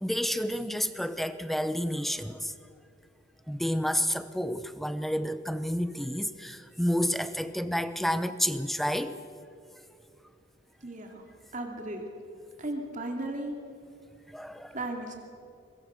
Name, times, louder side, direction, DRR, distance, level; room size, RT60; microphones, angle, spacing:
voice 1, 0.0-2.5 3.5-9.2 14.3-14.8, equal, ahead, 12 dB, 0.8 m, -30 dB
voice 2, 10.8-11.3 11.5-12.1 12.6-13.5 14.7-15.2, right 2 dB, 40° right, 2 dB, 2.8 m, -35 dB
24.0 x 22.0 x 6.6 m, 2.5 s
head